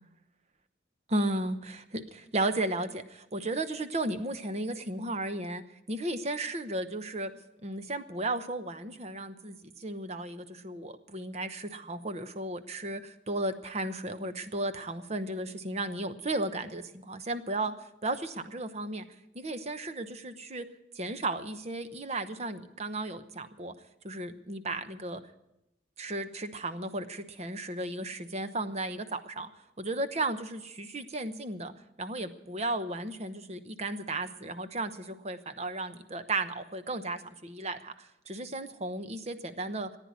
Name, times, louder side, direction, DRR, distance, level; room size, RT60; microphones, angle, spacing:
voice 1, 1.1-5.6 5.9-7.3 7.6-17.7 18.0-19.1 19.3-20.7 20.9-23.7 24.0-25.2 26.0-29.5 29.8-31.7 32.0-37.9 38.3-39.9, right 2 dB, 35° right, 10 dB, 0.9 m, -34 dB
15.0 x 9.9 x 9.4 m, 0.88 s
head